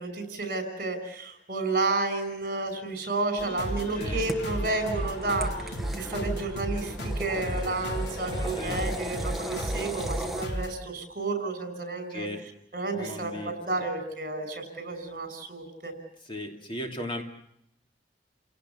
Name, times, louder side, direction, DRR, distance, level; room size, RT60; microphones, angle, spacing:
voice 1, 0.0-12.3 12.7-15.9, right 3 dB, 50° right, 9 dB, 5.7 m, -31 dB
sound 1, 3.4-10.7, equal, 70° left, 3.1 m, -34 dB
sound 2, 4.0-10.5, right 1 dB, ahead, 1.1 m, -38 dB
voice 2, 12.1-12.4 12.9-13.9 16.3-17.2, left 1 dB, 30° left, 3 dB, 2.9 m, -37 dB
30.0 x 17.5 x 7.1 m, 0.73 s
head